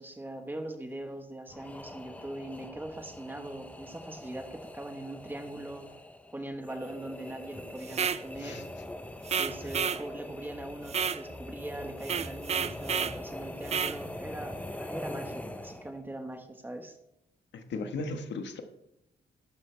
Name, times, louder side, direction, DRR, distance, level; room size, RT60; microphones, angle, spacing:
voice 1, 0.0-5.9 6.3-8.7 9.3-16.9, right 1 dB, 10° right, 5 dB, 1.2 m, -41 dB
sound 1, 1.5-16.1, left 1 dB, 5° left, 0.7 m, -43 dB
Duck Caller, 7.9-8.2 9.3-10.0 10.9-11.2 12.0-13.2 13.7-14.0, right 7 dB, 35° right, 0.4 m, -30 dB
voice 2, 17.5-18.6, left 3 dB, 75° left, 6 dB, 1.4 m, -36 dB
12.5 x 12.0 x 3.4 m, 0.83 s
wide cardioid pair, 160°, 18 cm